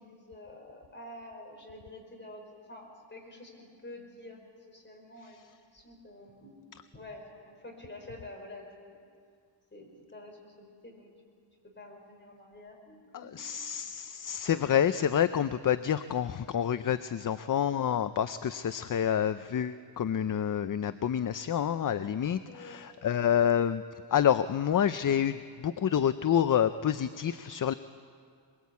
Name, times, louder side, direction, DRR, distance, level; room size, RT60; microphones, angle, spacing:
voice 1, 0.0-6.6 6.9-9.0 9.7-11.1 11.6-13.5 17.2-17.4 22.4-22.8, left 1 dB, 25° left, 0 dB, 5.0 m, -48 dB
voice 2, 13.1-23.8 24.1-27.7, left 9 dB, 45° left, 12 dB, 0.5 m, -28 dB
22.5 x 22.0 x 8.3 m, 2.2 s
wide cardioid pair, 145°, 44 cm